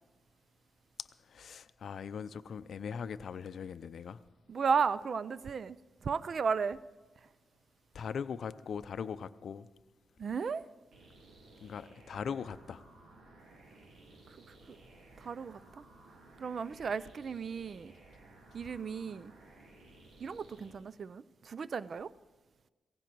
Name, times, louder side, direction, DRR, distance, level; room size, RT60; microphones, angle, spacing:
voice 1, 1.0-4.2 7.9-9.7 11.6-12.8, left 7 dB, 65° left, 0.5 m, -40 dB
voice 2, 4.5-5.8 6.0-6.8 10.2-10.6 15.2-15.6 16.4-17.9 18.5-19.3 20.2-22.1, right 6 dB, 55° right, 0.4 m, -34 dB
sound 1, 10.9-20.7, right 2 dB, 75° right, 3.2 m, -57 dB
17.5 x 15.0 x 4.6 m
cardioid pair, 100°, 0 cm